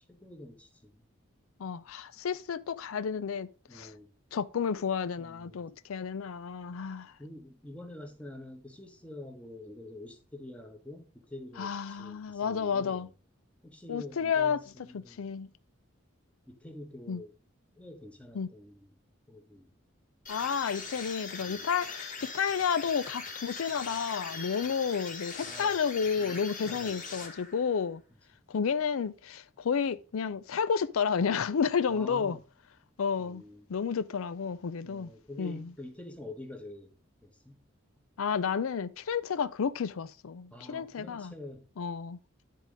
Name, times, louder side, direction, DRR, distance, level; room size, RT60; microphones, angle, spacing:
voice 1, 0.1-1.1 3.7-4.1 5.2-5.7 7.2-13.1 13.6-15.2 16.5-17.3 17.8-18.9 19.3-19.7 21.4-21.6 25.4-25.8 26.2-27.1 31.9-32.4 33.2-33.7 34.8-36.9 37.2-37.6 40.5-41.7, left 1 dB, 5° left, 1.2 m, -47 dB
voice 2, 1.6-3.9 4.3-7.1 11.6-13.1 13.9-14.6 14.9-15.5 17.1-17.2 18.3-18.5 20.3-28.0 28.5-32.4 33.0-33.4 33.7-35.1 35.4-35.7 38.2-41.3 41.8-42.2, left 6 dB, 90° left, 0.4 m, -31 dB
sound 1, 20.3-27.8, left 4 dB, 40° left, 1.9 m, -41 dB
10.5 x 3.7 x 5.0 m
head